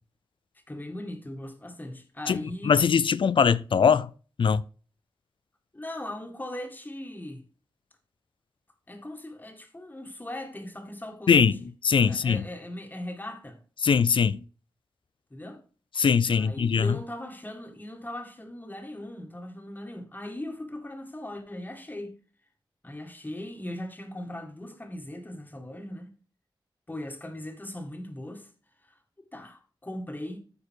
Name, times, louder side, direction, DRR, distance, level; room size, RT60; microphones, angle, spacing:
voice 1, 0.7-2.8 5.7-7.4 8.9-11.6 12.0-13.6 15.3-15.6 16.3-22.2 22.8-26.1 26.9-28.5 28.8-29.0 29.3-30.4, left 1 dB, 20° left, 1.9 m, -39 dB
voice 2, 2.3-4.1 4.4-4.6 11.3-11.5 11.8-12.4 13.8-14.4 16.0-17.0, left 6 dB, 70° left, 0.5 m, -21 dB
13.5 x 4.8 x 4.6 m
wide cardioid pair, 100°, 9 cm